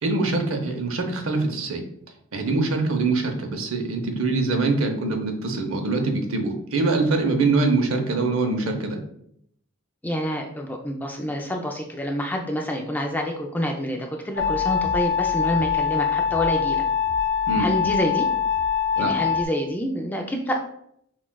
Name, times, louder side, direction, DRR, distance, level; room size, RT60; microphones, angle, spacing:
voice 1, 0.0-1.8 2.3-9.0 17.5-17.7 19.0-19.1, right 3 dB, 75° right, 4 dB, 0.7 m, -24 dB
voice 2, 10.0-16.8 17.6-18.3 19.0-20.6, equal, 10° left, 2 dB, 0.3 m, -27 dB
sound 1, 14.4-19.5, left 7 dB, 65° left, 0.8 m, -23 dB
5.9 x 2.4 x 2.2 m, 0.71 s
head